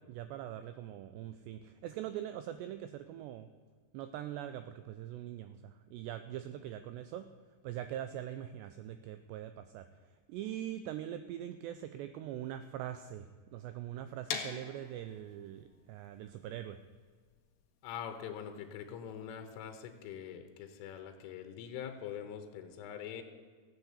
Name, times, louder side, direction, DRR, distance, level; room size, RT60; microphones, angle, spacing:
voice 1, 0.0-3.5 3.9-7.3 7.6-9.9 10.3-16.8, right 11 dB, 85° right, 10 dB, 2.5 m, -42 dB
sound 1, 14.3-20.1, left 7 dB, 65° left, 3.2 m, -45 dB
voice 2, 17.8-23.2, left 8 dB, 90° left, 7 dB, 3.6 m, -44 dB
15.0 x 9.0 x 8.1 m, 1.5 s
omnidirectional pair, 5.5 m